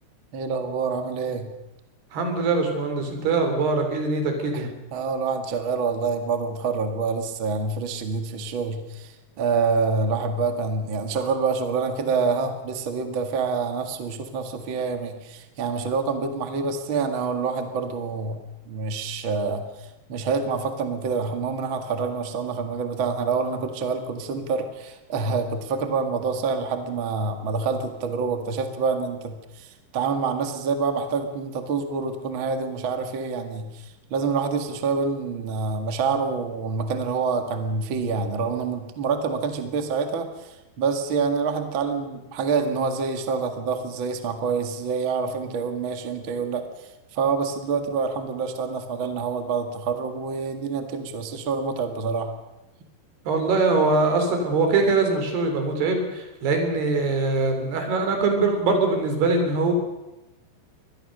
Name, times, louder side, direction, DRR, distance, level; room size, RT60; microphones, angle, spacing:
voice 1, 0.3-1.5 4.5-18.4 18.7-33.8 34.1-46.6 47.1-52.3, right 5 dB, 45° right, 6 dB, 1.9 m, -27 dB
voice 2, 2.1-4.7 53.3-59.7, right 3 dB, 75° right, 5 dB, 5.6 m, -22 dB
24.5 x 19.5 x 6.7 m, 1.0 s
omnidirectional pair, 4.7 m